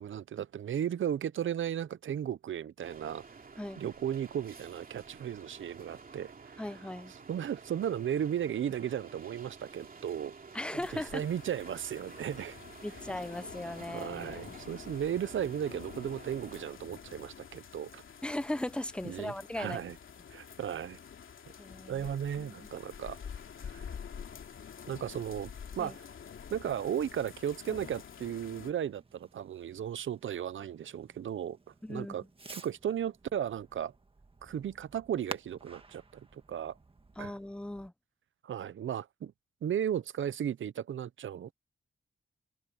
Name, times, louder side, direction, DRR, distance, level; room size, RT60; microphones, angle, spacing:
voice 1, 0.0-3.2 3.8-6.6 7.3-10.3 10.9-12.6 13.9-18.0 19.0-20.0 20.3-21.0 21.9-23.2 23.7-23.8 24.9-25.5 25.8-26.0 26.5-31.6 31.9-32.2 32.5-33.9 34.4-36.7 37.2-37.3 38.4-39.3 39.6-41.5, right 9 dB, 75° right, 0.7 m, -35 dB
sound 1, 2.8-16.7, right 4 dB, 45° right, 2.8 m, -51 dB
voice 2, 6.6-7.1 10.5-11.2 12.8-14.6 18.2-19.8 21.6-22.1 22.4-22.7 25.8-26.0 31.8-32.3 37.2-37.9, left 1 dB, 5° left, 0.7 m, -38 dB
sound 2, 10.8-28.7, left 7 dB, 80° left, 2.8 m, -48 dB
Fireworks, 26.5-37.9, right 3 dB, 25° right, 1.7 m, -52 dB
wide cardioid pair, 105°, 20 cm